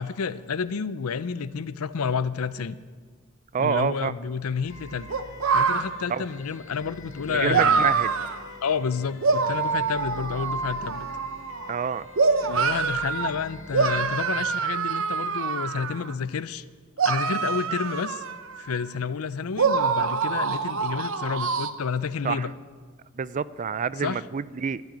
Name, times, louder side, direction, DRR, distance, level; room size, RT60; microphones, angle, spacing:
voice 1, 0.0-2.8 3.6-5.1 5.5-7.9 8.6-11.1 12.4-16.6 17.0-18.2 18.6-22.5 24.0-24.2, left 6 dB, 85° left, 16 dB, 0.5 m, -30 dB
voice 2, 3.5-4.1 6.1-6.2 7.3-8.1 11.7-12.1 22.2-22.5 23.1-24.8, right 6 dB, 35° right, 17 dB, 0.3 m, -27 dB
sound 1, 4.6-14.1, left 1 dB, 65° left, 1.6 m, -45 dB
sound 2, 5.1-5.8 7.5-8.4 9.2-11.7 12.2-13.3 13.7-16.1 17.0-18.9 19.6-21.7, right 5 dB, 65° right, 0.7 m, -25 dB
12.0 x 8.9 x 9.3 m, 1.5 s
head